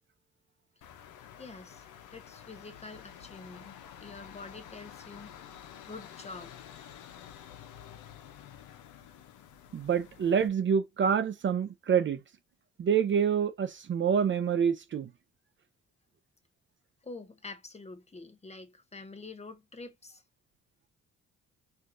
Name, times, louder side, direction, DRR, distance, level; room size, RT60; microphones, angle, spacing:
sound 1, 0.8-10.5, left 9 dB, 85° left, 0.7 m, -50 dB
voice 1, 1.4-1.8 2.1-3.7 4.0-5.3 5.9-6.5 17.0-20.2, left 3 dB, 20° left, 0.8 m, -46 dB
voice 2, 9.7-12.2 12.8-15.1, right 7 dB, 40° right, 0.5 m, -27 dB
4.5 x 2.5 x 2.5 m
cardioid pair, 90°, 30 cm